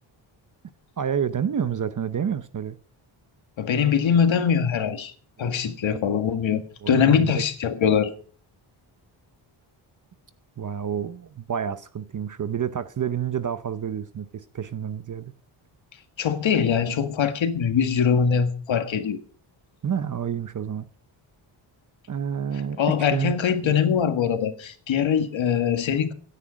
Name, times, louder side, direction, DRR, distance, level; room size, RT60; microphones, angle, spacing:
voice 1, 1.0-2.8 5.8-6.0 6.8-7.4 10.6-15.3 19.8-20.9 22.1-22.8 23.1-23.3 23.6-23.9, right 8 dB, 40° right, 0.7 m, -29 dB
voice 2, 3.6-5.1 5.4-8.1 16.2-19.2 22.8-26.1, left 7 dB, 70° left, 1.8 m, -22 dB
16.0 x 9.9 x 5.2 m
wide cardioid pair, 160°, 48 cm